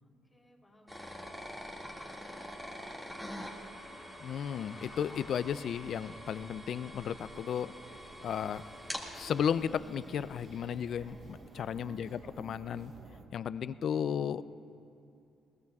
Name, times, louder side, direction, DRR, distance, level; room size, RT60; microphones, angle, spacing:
voice 1, 0.0-4.1 12.1-12.4, left 1 dB, 10° left, -3 dB, 3.4 m, -63 dB
sound 1, 0.9-11.7, equal, 5° right, 2.1 m, -46 dB
sound 2, 2.7-7.9, left 3 dB, 40° left, 1.6 m, -57 dB
voice 2, 4.2-7.7 8.2-8.6 9.1-12.9 13.3-14.4, left 8 dB, 65° left, 15 dB, 0.4 m, -34 dB
sound 3, 4.3-13.2, right 3 dB, 60° right, 1.2 m, -56 dB
21.5 x 20.0 x 2.4 m, 2.7 s
cardioid pair, 90°, 0 cm